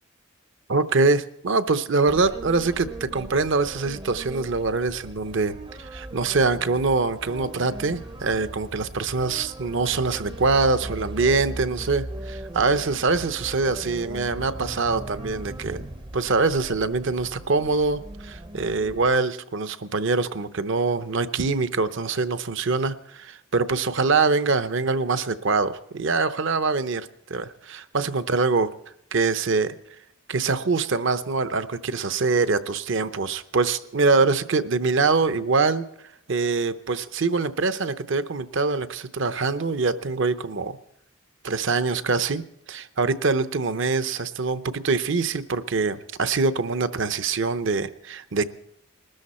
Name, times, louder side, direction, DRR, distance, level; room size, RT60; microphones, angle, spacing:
voice 1, 0.7-15.9 16.1-28.7 29.1-29.8 30.3-35.9 36.3-40.8 41.4-42.4 42.7-48.4, right 4 dB, 60° right, 12 dB, 0.7 m, -24 dB
sound 1, 2.1-19.2, right 1 dB, 20° right, 0.6 m, -38 dB
21.0 x 13.0 x 4.3 m, 0.76 s
head